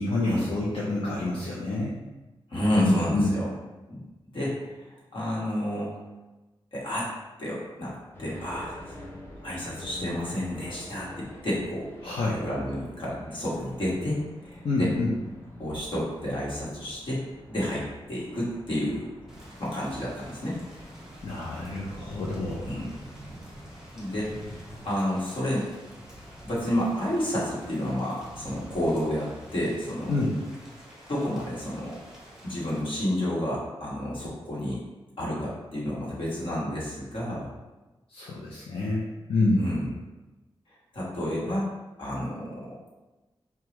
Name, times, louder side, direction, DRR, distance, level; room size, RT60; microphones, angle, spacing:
voice 1, 0.0-1.9 2.7-3.4 12.0-12.4 14.6-15.1 21.2-22.7 30.1-30.3 38.1-39.7, left 2 dB, 75° left, -5 dB, 0.6 m, -27 dB
voice 2, 2.5-3.5 3.9-4.0 4.3-5.9 6.7-7.1 7.4-8.7 9.4-11.9 12.2-14.9 15.6-17.2 17.5-19.1 19.6-20.6 22.6-22.9 23.9-24.3 24.8-25.7 26.4-30.2 31.1-32.0 32.4-34.8 35.2-37.5 39.6-39.9 40.9-41.7 42.0-42.7, left 1 dB, 60° left, -7 dB, 1.3 m, -30 dB
sound 1, 8.1-25.0, left 1 dB, 25° left, 0.6 m, -47 dB
Thunder / Rain, 19.3-32.8, equal, 5° right, 0.9 m, -46 dB
4.7 x 2.3 x 3.0 m, 1.1 s
wide cardioid pair, 140°, 10 cm